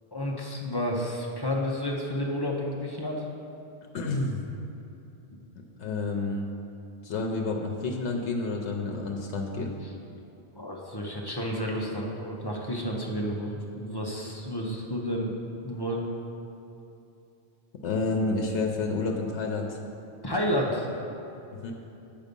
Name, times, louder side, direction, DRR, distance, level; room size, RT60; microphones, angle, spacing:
voice 1, 0.1-3.3 9.8-9.9 10.5-15.3 15.6-16.1 20.2-20.9, equal, 25° left, -2 dB, 0.7 m, -31 dB
voice 2, 3.9-4.4 5.5-6.5 7.0-9.7 17.8-19.8 21.6-21.7, left 3 dB, 90° left, 1 dB, 1.0 m, -29 dB
8.2 x 5.3 x 5.2 m, 2.8 s
omnidirectional pair, 1.1 m